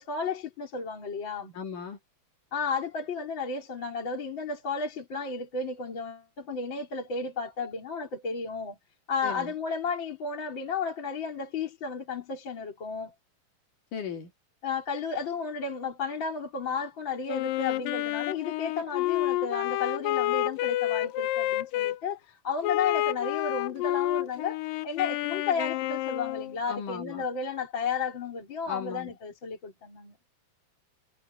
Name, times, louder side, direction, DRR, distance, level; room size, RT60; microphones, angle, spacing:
voice 1, 0.0-1.6 2.5-8.8 9.1-13.1 14.6-30.1, left 5 dB, 30° left, 4.1 m, -33 dB
voice 2, 1.5-2.0 9.2-9.5 13.9-14.3 26.7-27.3 28.7-29.1, left 6 dB, 65° left, 4.0 m, -37 dB
Wind instrument woodwind instrument, 17.3-22.0 22.6-26.6, left 15 dB, 80° left, 2.3 m, -29 dB
omnidirectional pair, 4.2 m